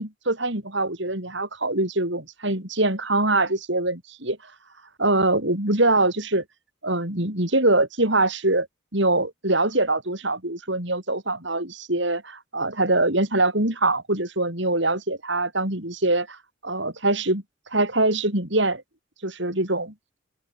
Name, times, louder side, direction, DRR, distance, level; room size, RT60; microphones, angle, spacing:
voice 1, 0.0-4.4 5.0-6.4 6.8-8.7 8.9-16.4 16.6-17.4 17.7-18.8 19.2-19.9, right 2 dB, 60° right, 5.8 m, -23 dB
open air
head